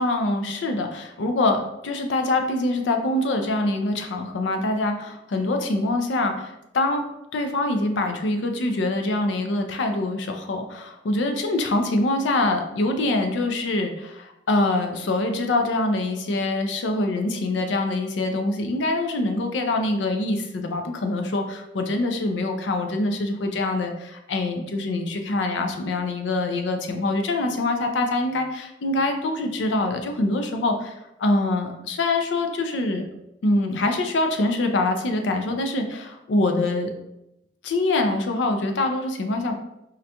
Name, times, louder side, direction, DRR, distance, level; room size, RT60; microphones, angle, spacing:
voice 1, 0.0-7.0 7.3-30.9 31.2-33.1 33.4-36.9 37.6-39.5, left 2 dB, 90° left, 5 dB, 0.4 m, -24 dB
3.8 x 2.2 x 2.8 m, 0.85 s
head